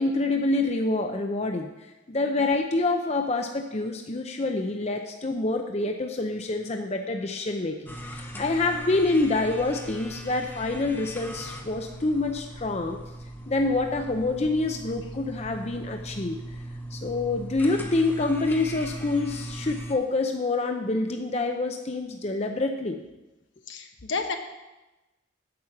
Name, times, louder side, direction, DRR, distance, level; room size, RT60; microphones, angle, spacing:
voice 1, 0.0-1.7 2.1-13.0 13.5-16.4 16.9-23.0, left 2 dB, 35° left, 4 dB, 0.6 m, -27 dB
sound 1, 7.9-19.9, right 1 dB, 10° left, 1.0 m, -39 dB
voice 2, 23.7-24.4, left 4 dB, 75° left, 5 dB, 1.1 m, -32 dB
8.7 x 8.2 x 5.9 m, 1.0 s
head